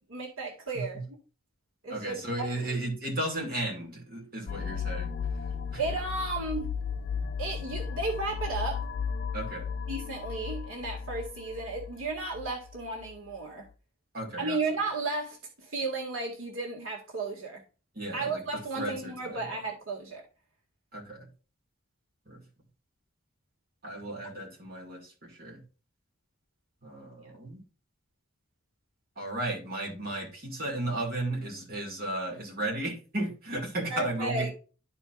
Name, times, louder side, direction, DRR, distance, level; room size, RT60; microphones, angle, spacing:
voice 1, 0.1-1.2 1.8-2.7 5.8-6.7 7.4-8.9 9.9-13.7 14.4-17.6 18.1-20.2 24.2-24.3 33.9-34.5, right 3 dB, 80° right, 1.9 m, -34 dB
voice 2, 1.9-5.1 5.7-5.8 9.3-9.7 14.1-14.6 18.0-19.5 20.9-21.3 22.3-22.4 23.8-25.6 26.8-27.6 29.2-34.5, right 1 dB, 45° right, 2.1 m, -34 dB
sound 1, 4.5-13.1, left 6 dB, 55° left, 0.4 m, -35 dB
12.5 x 4.6 x 2.4 m
head